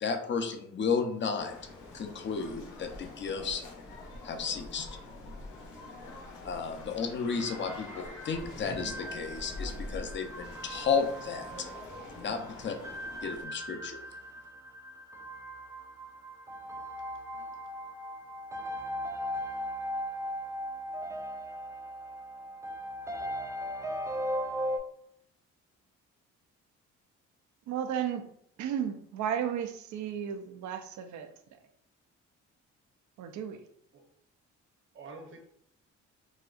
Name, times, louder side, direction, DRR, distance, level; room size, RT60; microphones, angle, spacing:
voice 1, 0.0-1.5 1.9-3.6 4.2-4.9 6.4-11.7 12.1-12.8 13.2-14.0, left 5 dB, 40° left, 6 dB, 0.6 m, -33 dB
sound 1, 1.4-13.5, left 2 dB, 85° left, 0.8 m, -45 dB
voice 2, 5.8-6.1 12.5-12.7 17.3-17.5 33.9-34.0 34.9-35.4, right 3 dB, 40° right, 2 dB, 0.8 m, -49 dB
sound 2, 7.4-24.8, equal, 10° right, 0.3 m, -39 dB
voice 3, 27.7-28.2 28.6-31.3 33.2-33.6, right 9 dB, 70° right, 7 dB, 0.5 m, -33 dB
4.1 x 2.3 x 2.4 m, 0.68 s
cardioid pair, 90°, 30 cm